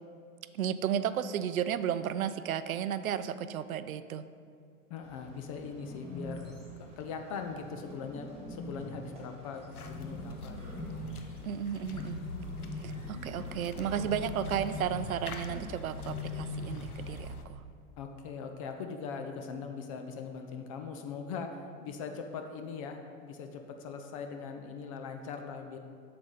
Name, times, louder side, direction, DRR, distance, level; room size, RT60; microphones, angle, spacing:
voice 1, 0.5-4.2 11.4-12.2 12.8-17.6, right 9 dB, 75° right, 13 dB, 0.5 m, -33 dB
voice 2, 4.9-10.9 18.0-25.8, left 5 dB, 25° left, 5 dB, 0.3 m, -41 dB
Bird, 5.0-17.2, left 2 dB, 15° right, 1.8 m, -43 dB
sound 1, 9.7-17.4, left 3 dB, 85° left, 0.8 m, -44 dB
7.7 x 6.7 x 3.9 m, 2.3 s
figure-of-eight pair, 95°, 43 cm